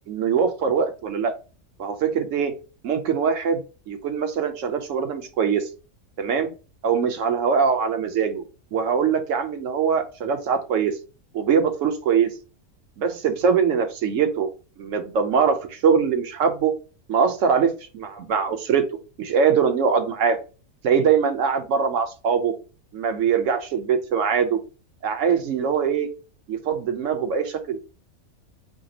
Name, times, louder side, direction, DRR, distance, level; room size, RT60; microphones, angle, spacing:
voice 1, 0.1-1.3 1.8-2.5 2.8-3.6 3.9-5.7 6.2-6.5 6.8-8.4 8.7-10.9 11.3-12.3 13.0-14.5 14.8-16.7 17.1-18.9 19.2-20.4 20.8-22.5 22.9-24.6 25.0-26.1 26.5-27.8, right 6 dB, 70° right, 6 dB, 1.1 m, -22 dB
5.1 x 2.0 x 3.8 m, 0.33 s
omnidirectional pair, 1.5 m